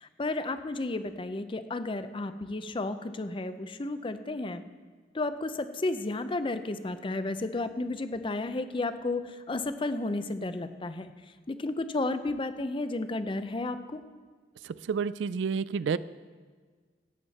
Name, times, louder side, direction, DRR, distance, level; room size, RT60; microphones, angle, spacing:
voice 1, 0.0-4.6 5.1-11.1 11.5-14.0, left 2 dB, 30° left, 10 dB, 0.5 m, -32 dB
voice 2, 14.6-16.0, right 5 dB, 85° right, 17 dB, 0.3 m, -30 dB
15.0 x 8.8 x 4.2 m, 1.5 s
head